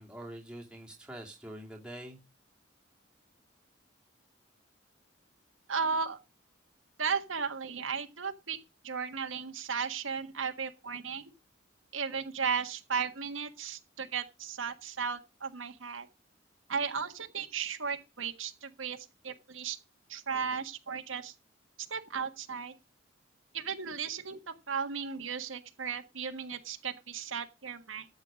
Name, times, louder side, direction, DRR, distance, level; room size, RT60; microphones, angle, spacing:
voice 1, 0.0-2.2, right 1 dB, 5° right, 2.5 m, -45 dB
voice 2, 5.7-6.2 7.0-8.6 8.8-11.2 11.9-16.1 16.7-19.0 19.2-19.8 20.1-21.3 21.9-22.7 23.5-28.1, right 6 dB, 90° right, 1.6 m, -35 dB
13.0 x 8.1 x 5.2 m
head